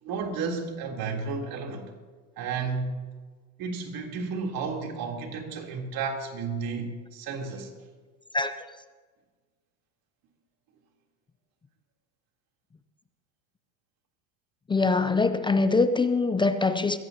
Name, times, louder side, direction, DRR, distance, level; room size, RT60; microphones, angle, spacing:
voice 1, 0.0-1.9 2.4-2.9 3.6-7.7, right 4 dB, 50° right, 3.5 m, -32 dB
voice 2, 14.7-17.0, left 3 dB, 10° left, 0.5 m, -23 dB
22.0 x 16.5 x 2.9 m
supercardioid pair, 110°, 46 cm